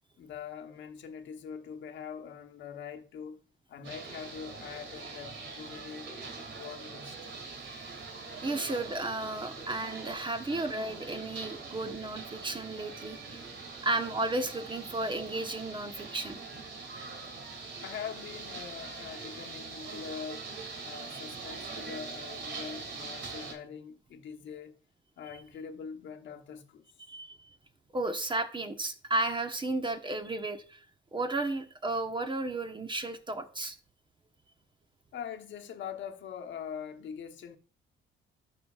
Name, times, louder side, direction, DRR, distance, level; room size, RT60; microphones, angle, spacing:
voice 1, 0.2-3.4 3.7-6.1 6.5-7.2 17.8-20.5 20.8-24.8 25.2-26.9 35.1-37.6, left 7 dB, 70° left, 1.1 m, -43 dB
sound 1, 3.8-23.5, right 4 dB, 65° right, 2.5 m, -43 dB
voice 2, 8.4-13.4 13.8-16.4 27.1-27.4 27.9-30.8 31.1-33.8, right 2 dB, 25° right, 1.1 m, -33 dB
12.0 x 5.0 x 2.4 m
cardioid pair, 90°, 20 cm